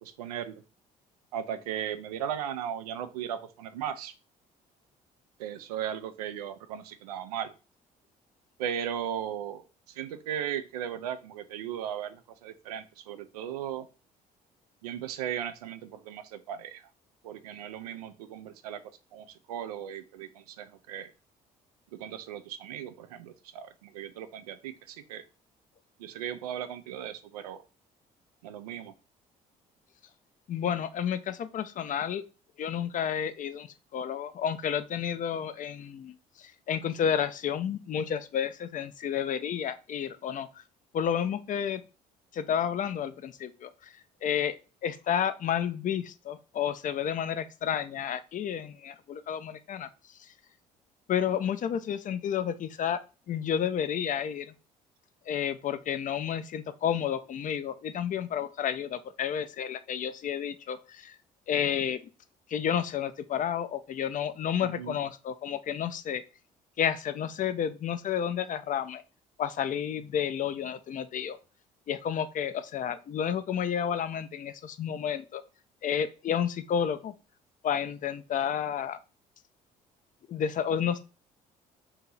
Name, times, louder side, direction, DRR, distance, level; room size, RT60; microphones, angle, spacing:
voice 1, 0.0-0.5 1.3-4.1 5.4-7.5 8.6-9.6 10.0-13.9 14.8-16.8 17.2-18.8 19.1-21.1 21.9-25.2 26.0-27.6 28.4-28.9 64.6-64.9, right 9 dB, 85° right, 11 dB, 0.4 m, -37 dB
voice 2, 30.5-32.2 32.6-40.5 40.9-41.8 42.3-43.9 44.2-44.5 44.8-49.9 51.1-53.0 53.3-54.5 55.3-61.2 61.5-62.0 62.5-66.2 66.8-69.0 69.4-71.4 71.9-75.4 75.8-77.1 77.6-79.0 80.3-81.0, left 8 dB, 45° left, 12 dB, 0.5 m, -31 dB
2.9 x 2.8 x 3.7 m, 0.32 s
hypercardioid pair, 55°, 19 cm